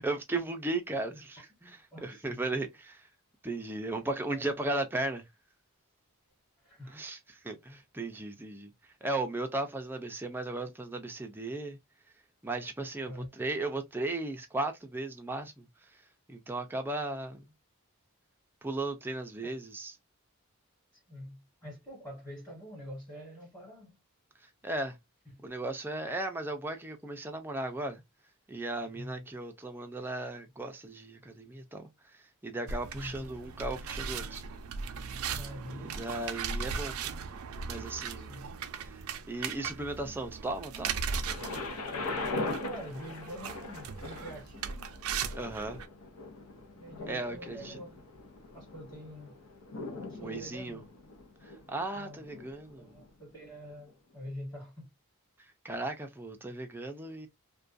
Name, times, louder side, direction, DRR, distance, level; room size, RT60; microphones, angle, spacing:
voice 1, 0.0-3.1 3.4-5.2 6.9-8.7 9.0-11.8 12.4-15.7 16.3-17.4 18.6-19.9 24.6-25.0 25.4-28.0 28.5-31.9 32.4-34.4 35.7-37.2 37.6-38.3 38.8-39.0 39.3-41.0 45.3-45.8 47.1-47.8 50.1-50.8 51.4-52.9 55.6-57.3, right 2 dB, 10° right, 0.4 m, -36 dB
voice 2, 1.9-2.4 3.8-3.9 4.3-4.5 6.6-7.0 13.0-13.3 19.4-19.5 20.9-23.9 25.3-25.4 28.9-29.2 32.9-33.3 35.4-36.0 38.1-38.5 42.6-45.0 46.7-48.0 48.5-49.3 50.1-50.8 51.9-52.2 52.5-54.9, equal, 15° left, 1.3 m, -46 dB
sound 1, 32.7-45.9, right 6 dB, 75° right, 0.4 m, -38 dB
Thunder, 41.2-53.1 53.9-54.0, left 2 dB, 80° left, 0.6 m, -41 dB
2.4 x 2.2 x 2.4 m
head